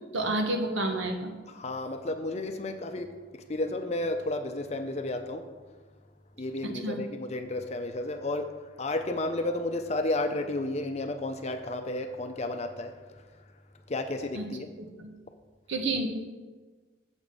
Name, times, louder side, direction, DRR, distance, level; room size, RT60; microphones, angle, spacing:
voice 1, 0.1-1.3 6.8-7.0 14.3-14.4 15.0-15.1 15.7-16.1, right 2 dB, 80° right, 3 dB, 1.1 m, -29 dB
voice 2, 1.5-5.4 6.4-8.5 8.8-13.3 13.9-14.7, left 2 dB, 35° left, 6 dB, 0.6 m, -32 dB
7.2 x 6.9 x 5.2 m, 1.4 s
head